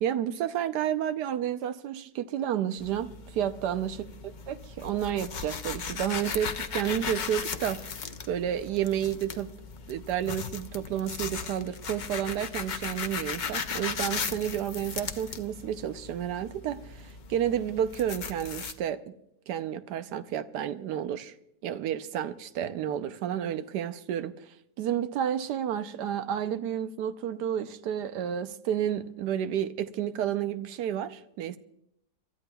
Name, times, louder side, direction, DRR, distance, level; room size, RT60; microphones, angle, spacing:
voice 1, 0.0-4.0 4.5-7.8 8.3-9.5 9.9-16.8 17.3-19.0 19.5-21.3 21.6-24.3 24.8-31.6, right 10 dB, 90° right, 1.3 m, -31 dB
sound 1, 2.8-18.7, left 5 dB, 65° left, 0.4 m, -37 dB
29.5 x 13.0 x 2.3 m
omnidirectional pair, 1.7 m